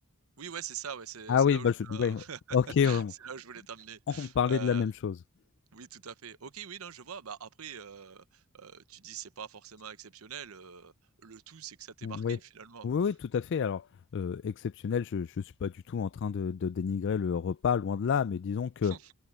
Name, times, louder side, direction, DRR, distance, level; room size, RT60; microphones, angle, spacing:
voice 1, 0.4-2.6 2.8-4.9 5.7-10.9 11.2-12.9 18.8-19.1, right 7 dB, 75° right, 0.9 m, -44 dB
voice 2, 1.3-2.2 2.5-3.1 4.1-5.2 12.0-12.4 12.8-13.8 14.1-18.9, left 7 dB, 55° left, 0.4 m, -29 dB
head